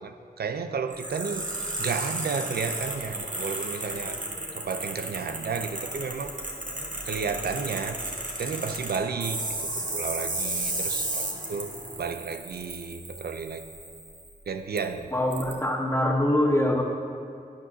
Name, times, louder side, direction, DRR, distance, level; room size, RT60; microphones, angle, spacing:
voice 1, 0.0-1.5 1.8-4.2 4.6-6.3 7.1-8.0 8.4-11.7 12.0-13.7 14.5-15.1, right 5 dB, 90° right, 9 dB, 0.5 m, -32 dB
sound 1, 0.9-14.3 14.8-14.9 15.3-15.5, right 2 dB, 55° right, 1.7 m, -34 dB
sound 2, 1.2-12.0, left 2 dB, 85° left, 1.8 m, -46 dB
voice 2, 15.1-16.8, left 1 dB, 15° left, -1 dB, 1.6 m, -24 dB
12.0 x 9.5 x 2.8 m, 2.3 s
cardioid pair, 45°, 16 cm